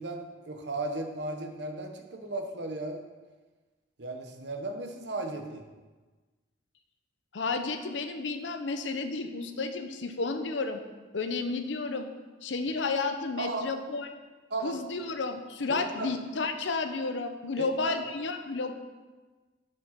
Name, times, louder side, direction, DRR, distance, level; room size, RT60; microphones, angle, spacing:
voice 1, 0.0-3.0 4.0-5.6 13.4-13.6 14.5-14.8 15.7-16.1 17.6-18.0, right 2 dB, 70° right, 4 dB, 1.0 m, -35 dB
voice 2, 7.3-10.8 11.1-12.1 12.4-14.1 14.6-18.7, left 3 dB, 85° left, 7 dB, 0.7 m, -32 dB
7.7 x 5.3 x 5.8 m, 1.3 s
head